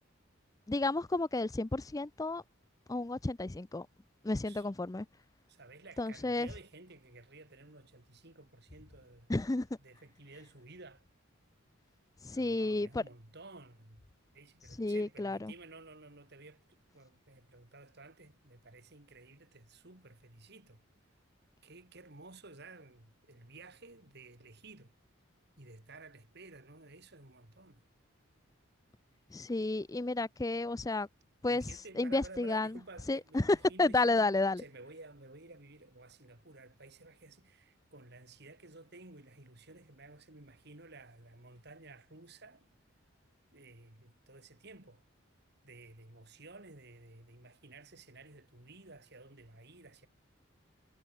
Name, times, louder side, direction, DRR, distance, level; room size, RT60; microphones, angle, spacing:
voice 1, 0.7-2.4 2.9-3.9 4.2-5.1 6.0-6.5 9.3-9.7 12.2-13.0 14.8-15.5 29.3-31.1 31.4-31.7 32.0-32.8 33.1-34.6, left 2 dB, 15° left, 0.5 m, -31 dB
voice 2, 5.5-9.3 9.8-11.0 12.3-14.0 14.3-20.8 21.6-24.9 25.6-27.8 31.5-42.7 43.5-45.0 45.6-50.1, right 3 dB, 55° right, 3.2 m, -54 dB
head